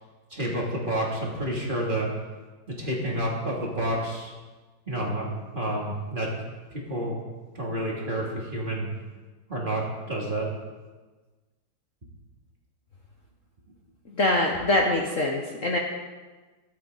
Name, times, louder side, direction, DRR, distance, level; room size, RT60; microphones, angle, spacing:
voice 1, 0.3-2.1 2.8-4.3 4.9-6.3 6.7-7.2 7.5-8.9 9.5-9.8 10.1-10.5, right 1 dB, 25° right, -3 dB, 2.9 m, -29 dB
voice 2, 14.1-15.8, left 1 dB, 45° left, 0 dB, 1.4 m, -24 dB
23.0 x 8.7 x 4.1 m, 1.3 s
omnidirectional pair, 2.1 m